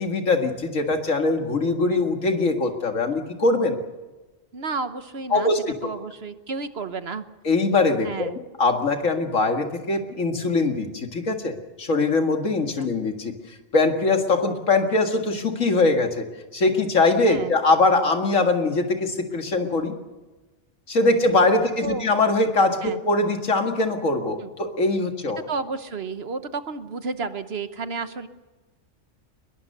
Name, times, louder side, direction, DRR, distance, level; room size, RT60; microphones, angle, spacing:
voice 1, 0.0-3.8 5.3-5.9 7.4-8.3 8.6-16.3 16.5-19.9 20.9-25.4, left 3 dB, 85° left, 4 dB, 2.4 m, -22 dB
voice 2, 4.5-5.5 5.8-7.2 8.0-8.4 12.8-12.9 17.3-17.5 21.8-22.1 22.8-23.0 24.4-24.5 25.5-28.3, right 4 dB, 55° right, 10 dB, 1.3 m, -31 dB
22.0 x 21.0 x 6.7 m, 1.2 s
omnidirectional pair, 1.3 m